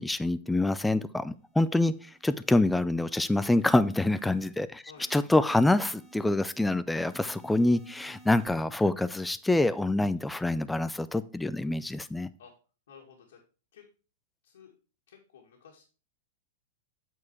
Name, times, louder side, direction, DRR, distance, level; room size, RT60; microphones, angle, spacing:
voice 1, 0.0-4.8 5.1-12.3, left 2 dB, 5° left, 13 dB, 0.4 m, -26 dB
sound 1, 1.4-2.5 3.0-4.5 5.0-6.5 7.0-8.5, right 2 dB, 20° right, 2.0 m, -56 dB
voice 2, 12.9-13.4 13.7-13.8 14.4-14.7 15.1-15.8, left 7 dB, 80° left, -2 dB, 2.0 m, -53 dB
8.4 x 4.7 x 4.7 m, 0.36 s
hypercardioid pair, 140°, 0 cm